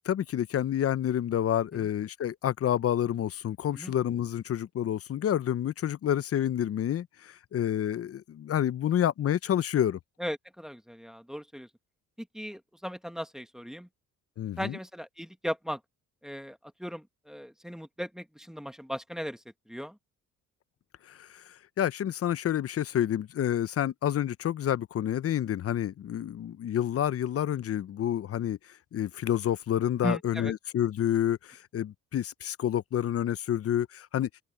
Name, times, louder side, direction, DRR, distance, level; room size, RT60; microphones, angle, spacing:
voice 1, 0.1-10.0 14.4-14.8 21.2-21.4 21.8-28.6 28.9-34.3, left 10 dB, 50° left, 0.7 m, -29 dB
voice 2, 10.2-11.7 12.2-13.9 14.6-15.8 16.2-20.0 30.0-30.5, equal, ahead, 1.8 m, -37 dB
open air
cardioid pair, 90°, 30 cm